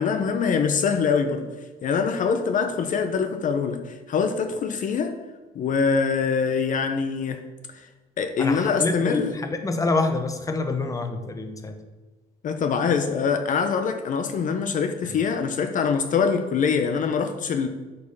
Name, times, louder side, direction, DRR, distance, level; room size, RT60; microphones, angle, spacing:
voice 1, 0.0-1.5 1.8-5.1 5.5-7.4 7.7-7.9 8.2-9.3 12.4-17.7, left 5 dB, 50° left, 7 dB, 0.8 m, -24 dB
voice 2, 8.4-11.8 15.0-15.2, left 3 dB, 20° left, 7 dB, 0.9 m, -27 dB
8.0 x 5.6 x 5.6 m, 1.2 s
cardioid pair, 110°, 17 cm